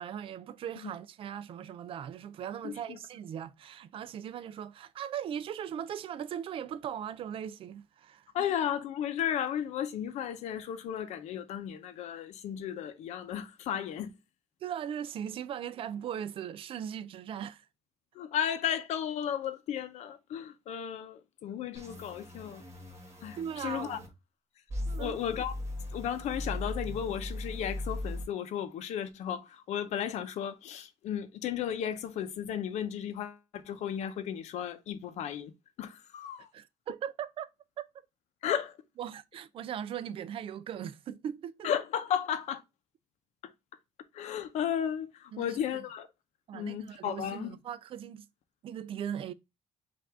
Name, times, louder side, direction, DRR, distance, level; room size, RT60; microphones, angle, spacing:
voice 1, 0.0-8.3 14.6-17.7 23.4-24.1 24.9-25.2 36.5-37.5 37.8-37.9 39.0-41.7 45.3-45.8 46.5-48.2 48.6-49.3, right 9 dB, 50° right, 0.4 m, -39 dB
voice 2, 2.6-3.0 8.3-14.1 18.1-22.6 23.2-24.0 25.0-25.5 25.9-35.5 35.8-36.5 38.4-38.8 41.6-42.6 43.4-43.5 44.1-46.1 46.5-47.5, left 9 dB, 70° left, 0.7 m, -34 dB
sound 1, 21.7-24.1 24.7-28.2, left 1 dB, 25° right, 1.6 m, -38 dB
5.7 x 2.6 x 3.5 m
cardioid pair, 140°, 12 cm